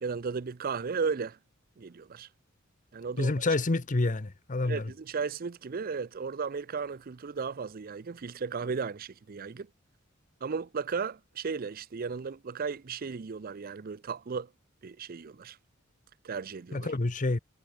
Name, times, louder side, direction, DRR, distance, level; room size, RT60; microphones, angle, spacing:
voice 1, 0.0-1.4 1.8-2.3 2.9-3.3 4.6-9.7 10.4-14.5 14.8-15.6 16.2-16.9, right 5 dB, 45° right, 0.5 m, -35 dB
voice 2, 3.2-4.9 16.7-17.4, left 2 dB, 40° left, 0.8 m, -28 dB
head